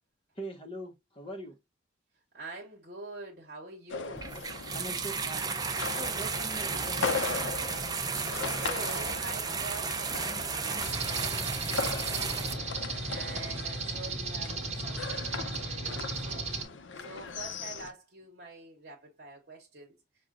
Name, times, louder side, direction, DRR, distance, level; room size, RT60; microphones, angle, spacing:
voice 1, 0.4-1.6 4.7-5.6 5.9-7.3, right 1 dB, 30° left, 0.7 m, -42 dB
voice 2, 2.3-4.3 8.0-16.5 16.9-20.0, right 3 dB, 55° right, 1.0 m, -46 dB
sound 1, 3.9-17.9, left 5 dB, 90° left, 0.6 m, -39 dB
sound 2, 4.2-12.5, right 5 dB, 20° right, 0.5 m, -33 dB
sound 3, 10.8-16.6, right 3 dB, 35° right, 1.0 m, -35 dB
6.1 x 2.2 x 3.7 m
head